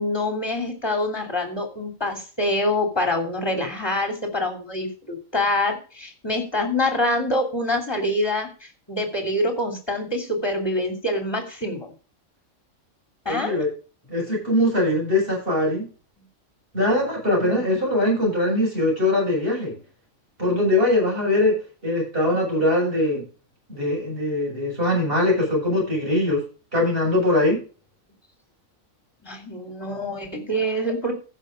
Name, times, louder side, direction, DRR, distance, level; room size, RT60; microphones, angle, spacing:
voice 1, 0.0-11.9 13.2-13.6 17.3-17.6 29.2-31.1, left 1 dB, 20° left, 4 dB, 2.9 m, -25 dB
voice 2, 13.3-13.7 14.1-15.9 16.7-19.7 20.4-21.5 21.8-23.2 23.7-26.4 26.7-27.6, left 1 dB, 45° right, -2 dB, 7.3 m, -21 dB
15.0 x 6.4 x 5.2 m, 0.37 s
omnidirectional pair, 1.4 m